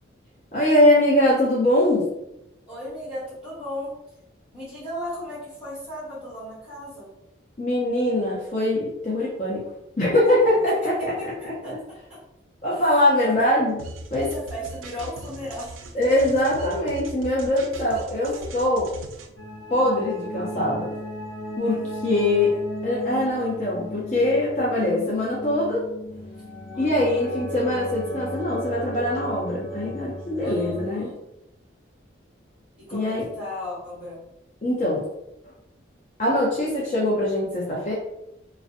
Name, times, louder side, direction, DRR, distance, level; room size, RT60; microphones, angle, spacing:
voice 1, 0.5-2.1 7.6-9.6 10.0-10.7 11.0-11.1 11.4-11.8 12.6-13.8 14.1-14.3 15.9-18.9 19.7-20.9 21.6-22.5 22.8-25.8 26.7-31.1 32.9-33.3 34.6-35.0 36.2-37.9, left 1 dB, 35° left, -6 dB, 0.5 m, -22 dB
voice 2, 2.6-3.9 4.5-7.1 10.7-11.3 11.6-12.2 12.7-13.4 14.1-15.8 16.1-16.2 18.2-18.5 21.6-22.5 26.7-27.3 30.4-31.2 32.8-34.2, equal, 5° right, -9 dB, 1.3 m, -36 dB
sound 1, 13.8-19.3, right 2 dB, 85° right, 0.3 m, -39 dB
sound 2, 19.4-30.8, equal, 75° left, 0.7 m, -35 dB
2.5 x 2.1 x 2.4 m, 0.84 s
head